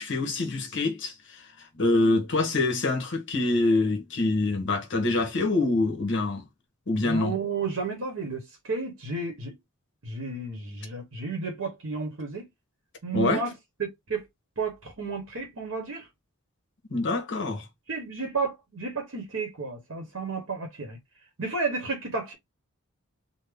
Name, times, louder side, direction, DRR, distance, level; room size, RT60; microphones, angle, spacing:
voice 1, 0.0-6.5 6.9-7.4 13.1-13.4 16.9-17.7, left 2 dB, 55° left, 0.9 m, -25 dB
voice 2, 7.0-9.6 10.0-12.5 13.0-13.5 13.8-14.3 14.6-16.1 17.9-21.0 21.4-22.3, right 4 dB, 60° right, 0.9 m, -32 dB
3.5 x 2.0 x 3.3 m
head